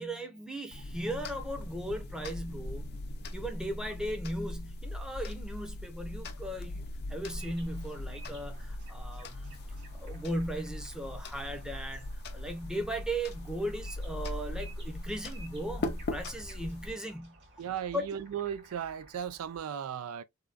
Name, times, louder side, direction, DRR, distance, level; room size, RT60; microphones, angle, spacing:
voice 1, 0.0-2.9 3.3-9.6 9.9-17.4 17.9-18.0, right 1 dB, 5° right, 0.7 m, -37 dB
sound 1, 0.7-16.9, left 1 dB, 50° left, 0.6 m, -40 dB
sound 2, 7.3-19.6, right 2 dB, 55° right, 1.7 m, -56 dB
voice 2, 17.6-20.2, right 9 dB, 75° right, 0.3 m, -36 dB
3.5 x 2.2 x 2.4 m
head